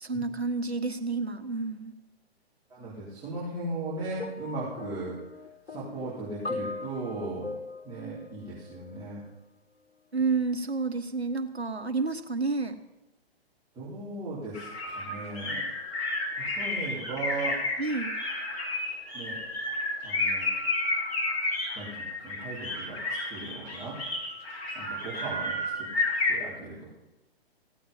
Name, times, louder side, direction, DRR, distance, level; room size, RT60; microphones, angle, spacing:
voice 1, 0.0-1.9 10.1-12.7 17.8-18.1, right 4 dB, 85° right, 7 dB, 1.4 m, -30 dB
voice 2, 2.7-7.5 7.8-9.2 13.7-15.6 16.3-17.6 19.1-19.4 20.0-20.5 21.7-24.0 24.7-25.9 26.3-26.9, right 2 dB, 10° right, -10 dB, 4.2 m, -37 dB
sound 1, 4.2-9.3 10.2-10.4, left 3 dB, 80° left, 0.9 m, -40 dB
sound 2, 14.5-26.4, left 2 dB, 30° left, 3.2 m, -31 dB
16.5 x 8.6 x 5.7 m, 0.99 s
figure-of-eight pair, 120°, 31 cm